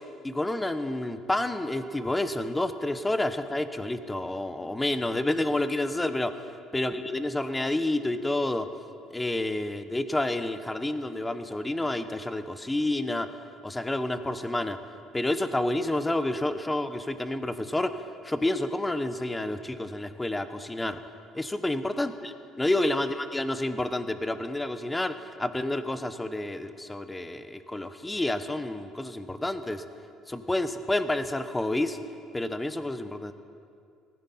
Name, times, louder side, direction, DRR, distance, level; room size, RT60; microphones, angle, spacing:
voice 1, 0.2-6.4 6.7-8.7 9.1-13.3 13.6-14.8 15.1-21.0 21.3-29.8 30.3-32.0 32.3-33.3, left 1 dB, 10° left, 10 dB, 1.0 m, -29 dB
18.5 x 15.0 x 4.3 m, 2.4 s
supercardioid pair, 95°, 0 cm